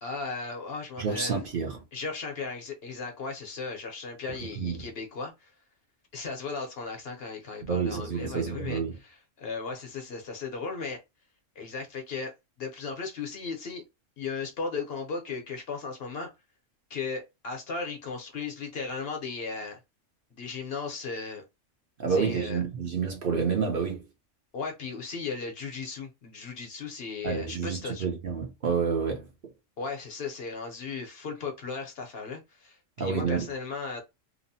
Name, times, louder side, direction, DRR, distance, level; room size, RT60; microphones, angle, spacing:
voice 1, 0.0-1.4 1.9-5.5 6.1-11.0 11.6-12.3 12.6-13.8 14.2-16.3 16.9-19.8 20.3-21.4 22.1-22.6 24.5-28.1 29.8-34.0, left 4 dB, 55° left, 0.9 m, -36 dB
voice 2, 1.0-1.8 4.5-4.8 7.6-9.0 22.0-24.0 27.2-29.3 33.0-33.5, right 5 dB, 50° right, 0.8 m, -29 dB
2.9 x 2.0 x 2.7 m
omnidirectional pair, 1.3 m